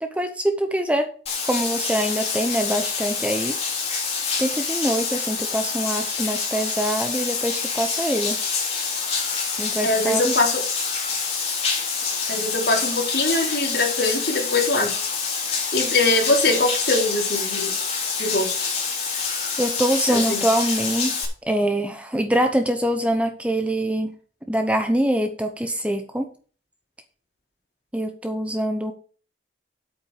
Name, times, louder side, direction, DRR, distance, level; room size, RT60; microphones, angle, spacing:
voice 1, 0.0-1.1 1.5-3.6 4.4-8.4 9.6-10.3 19.6-21.1 21.5-24.1 24.5-26.3 27.9-28.9, right 1 dB, 5° right, 6 dB, 0.8 m, -24 dB
Bathtub (filling or washing), 1.3-21.3, left 5 dB, 35° left, 3.8 m, -26 dB
voice 2, 9.8-10.6 12.3-15.0 15.7-17.7 18.2-18.5 20.1-20.4, left 2 dB, 60° left, -1 dB, 3.9 m, -22 dB
8.7 x 8.5 x 5.0 m, 0.40 s
head